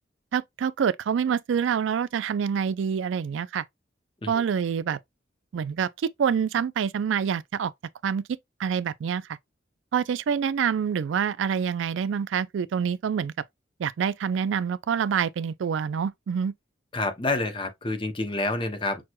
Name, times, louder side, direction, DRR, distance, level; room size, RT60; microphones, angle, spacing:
voice 1, 0.3-3.6 4.3-5.0 5.5-7.7 8.0-9.2 9.9-13.3 13.8-16.5, right 7 dB, 90° right, 0.3 m, -26 dB
voice 2, 16.9-19.0, left 2 dB, 25° left, 0.7 m, -28 dB
6.1 x 2.2 x 2.9 m
head